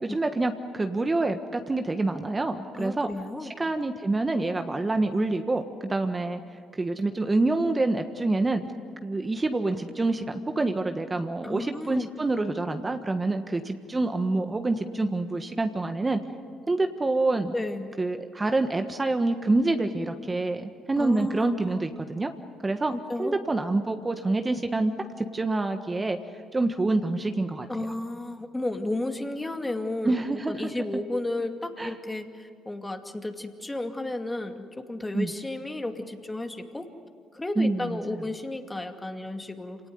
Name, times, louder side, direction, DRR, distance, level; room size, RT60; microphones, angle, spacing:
voice 1, 0.0-3.1 3.6-6.4 6.7-8.6 9.0-16.2 16.7-17.5 18.0-22.3 22.6-22.9 23.2-26.2 26.5-27.7 30.0-30.7 31.8-31.9 35.1-35.3 37.6-38.2, right 2 dB, 25° right, 7 dB, 1.5 m, -27 dB
voice 2, 2.8-3.5 11.4-12.1 17.5-17.9 21.0-21.6 22.9-23.4 27.7-36.9 37.3-39.8, left 2 dB, 15° left, 6 dB, 2.4 m, -33 dB
27.0 x 18.5 x 9.4 m, 2.1 s
hypercardioid pair, 55°, 0 cm